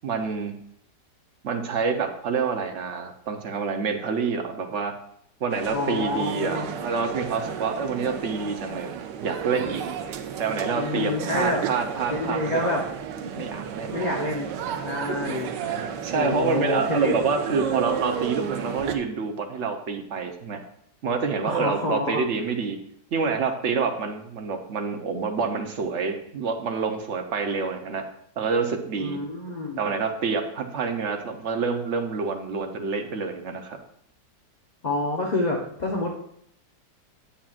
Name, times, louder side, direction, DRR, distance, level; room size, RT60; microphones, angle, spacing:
voice 1, 0.0-0.6 1.4-4.9 5.4-8.9 9.2-9.8 10.4-12.8 13.4-14.1 15.1-20.6 21.0-22.8 23.1-28.0 28.4-29.2 29.8-33.8, right 5 dB, 55° right, 5 dB, 0.9 m, -27 dB
sound 1, 5.5-19.0, right 8 dB, 80° right, 1.3 m, -33 dB
voice 2, 5.7-6.7 10.8-11.6 12.1-12.8 13.4-13.5 13.9-14.5 14.8-15.5 16.1-17.1 21.4-22.2 29.0-29.8 34.8-36.2, left 2 dB, 50° left, -1 dB, 0.5 m, -28 dB
8.7 x 7.2 x 2.5 m, 0.69 s
omnidirectional pair, 1.9 m